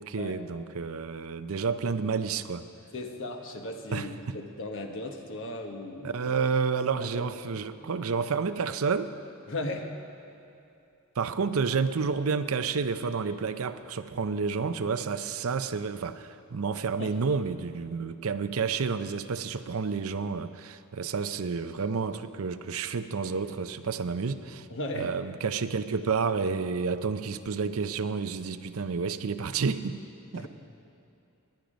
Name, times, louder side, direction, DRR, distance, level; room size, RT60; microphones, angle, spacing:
voice 1, 0.0-2.7 3.9-4.4 6.0-9.1 11.2-24.7 24.9-29.9 30.3-30.5, right 5 dB, 70° right, 11 dB, 0.6 m, -30 dB
voice 2, 2.9-6.2 7.1-7.2 9.5-9.9 17.0-17.1 24.7-25.2 30.3-30.5, left 2 dB, 65° left, 3 dB, 1.3 m, -36 dB
19.5 x 10.5 x 5.2 m, 2.6 s
head